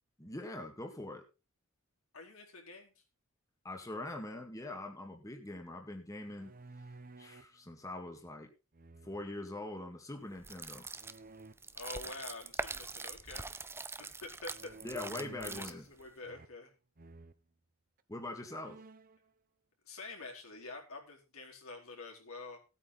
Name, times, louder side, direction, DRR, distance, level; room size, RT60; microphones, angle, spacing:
voice 1, 0.2-1.3 3.6-6.5 7.2-8.5 9.0-10.9 14.8-15.9 18.1-18.8, left 2 dB, 15° left, 3 dB, 2.0 m, -43 dB
voice 2, 2.1-3.0 11.7-13.4 14.0-14.8 15.4-16.7 19.8-22.6, left 3 dB, 80° left, 0 dB, 4.4 m, -47 dB
sound 1, 6.2-7.6 8.7-9.4 10.9-11.5 14.5-15.8 16.2-16.7 17.0-17.4 18.0-18.1 18.4-19.2, right 3 dB, 45° right, 0.9 m, -53 dB
sound 2, 10.4-16.1, right 3 dB, 10° right, 0.6 m, -43 dB
16.0 x 8.8 x 4.0 m, 0.30 s
head